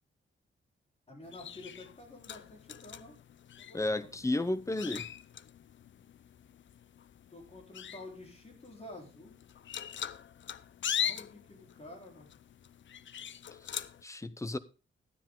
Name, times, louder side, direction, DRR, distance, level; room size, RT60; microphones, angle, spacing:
voice 1, 1.1-3.2 3.6-4.2 7.3-9.3 10.9-12.3, left 1 dB, 30° left, 4.0 m, -50 dB
sound 1, 1.2-14.0, left 9 dB, 65° left, 0.6 m, -42 dB
voice 2, 3.7-5.1 13.7-14.6, left 2 dB, 15° left, 0.7 m, -33 dB
12.5 x 9.8 x 3.7 m
wide cardioid pair, 140°, 21 cm